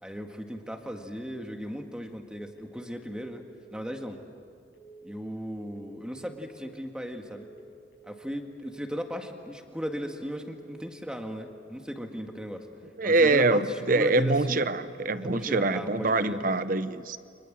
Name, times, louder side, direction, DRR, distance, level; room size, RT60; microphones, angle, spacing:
voice 1, 0.0-3.4 3.7-4.2 5.0-7.5 8.0-12.7 13.0-14.8 15.2-16.4, equal, 5° right, 4 dB, 1.9 m, -37 dB
sound 1, 2.2-2.6 2.9-3.3 3.6-4.0 4.7-5.1 5.4-5.8 6.1-6.5 7.2-7.6 7.9-8.3 8.6-9.0 9.7-10.1 10.4-10.8 11.1-11.5 12.2-12.6 12.9-13.3 13.6-14.0 14.7-15.1 15.4-15.8 16.1-16.5, right 4 dB, 60° left, 6.9 m, -51 dB
voice 2, 13.0-17.2, right 2 dB, 45° right, 12 dB, 0.9 m, -24 dB
30.0 x 25.5 x 7.6 m, 2.3 s
head